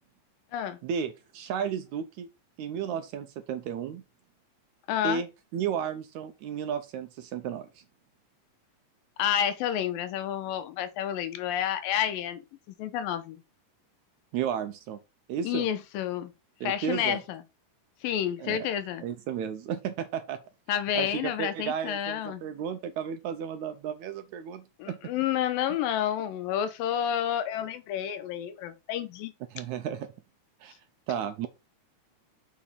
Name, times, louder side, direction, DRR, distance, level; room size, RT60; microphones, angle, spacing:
voice 1, 0.8-2.3 2.6-4.0 5.0-5.3 5.5-7.7 14.3-15.0 15.3-15.7 16.6-17.2 18.4-18.6 19.0-20.4 20.9-25.1 29.5-30.1 30.6-30.7 31.1-31.5, right 8 dB, 75° right, 1.8 m, -33 dB
voice 2, 4.9-5.2 9.2-12.4 12.7-13.4 15.4-16.3 16.6-17.4 18.0-19.0 20.7-22.4 24.8-29.3, left 10 dB, 90° left, 2.6 m, -30 dB
6.9 x 5.1 x 5.2 m
omnidirectional pair, 3.9 m